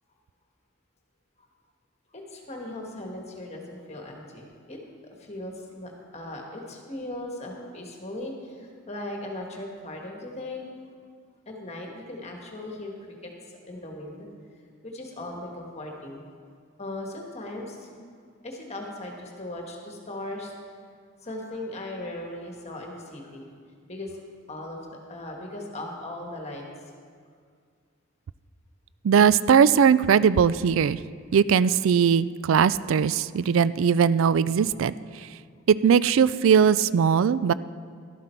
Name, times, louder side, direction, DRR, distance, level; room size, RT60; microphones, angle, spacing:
voice 1, 2.1-4.8 5.2-10.7 11.4-13.3 13.7-14.3 14.8-16.2 16.8-17.9 18.4-20.5 21.2-23.4 23.9-24.2 24.5-24.8 25.1-26.6, left 1 dB, 30° left, 0 dB, 1.5 m, -38 dB
voice 2, 29.0-31.0 31.3-34.9 35.7-37.5, right 7 dB, 70° right, 17 dB, 0.3 m, -20 dB
12.0 x 11.5 x 4.5 m, 2.1 s
head